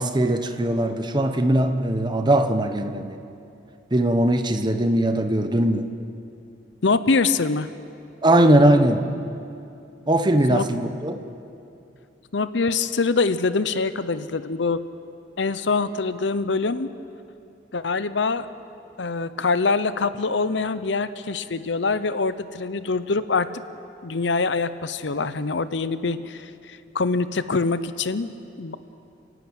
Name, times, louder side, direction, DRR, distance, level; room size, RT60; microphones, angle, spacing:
voice 1, 0.0-3.2 3.9-5.9 8.2-9.0 10.1-11.2, right 1 dB, 25° right, 7 dB, 1.0 m, -20 dB
voice 2, 6.8-7.7 10.5-10.6 12.3-14.8 15.4-16.9 17.7-18.5 19.0-23.5 24.0-28.3 28.6-28.8, left 4 dB, 75° left, 13 dB, 0.8 m, -24 dB
30.0 x 11.0 x 8.8 m, 2.6 s
head